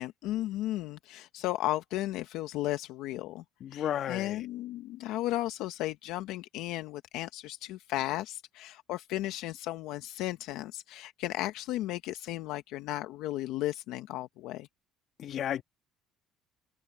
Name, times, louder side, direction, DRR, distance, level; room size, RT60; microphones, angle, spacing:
voice 1, 0.0-3.4 3.7-14.7, left 15 dB, 80° left, 0.9 m, -35 dB
voice 2, 3.6-4.4 15.2-15.6, left 10 dB, 55° left, 1.6 m, -33 dB
open air
cardioid pair, 100°, 0 cm